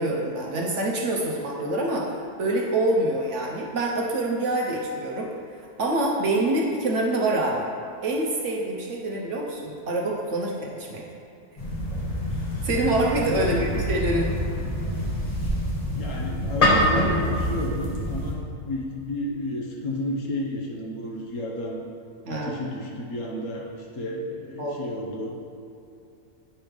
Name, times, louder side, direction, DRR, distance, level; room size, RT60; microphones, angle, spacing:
voice 1, 0.0-5.3 5.8-7.6 8.0-11.0 12.6-14.3 22.3-22.6 24.6-24.8, right 1 dB, 60° right, -2 dB, 0.9 m, -26 dB
sound 1, 11.6-18.3, equal, 30° left, 1.0 m, -26 dB
voice 2, 13.3-13.6 15.9-18.4 18.6-21.8 22.3-25.4, left 1 dB, 60° left, -1 dB, 1.1 m, -32 dB
8.8 x 3.1 x 5.1 m, 2.6 s
omnidirectional pair, 1.6 m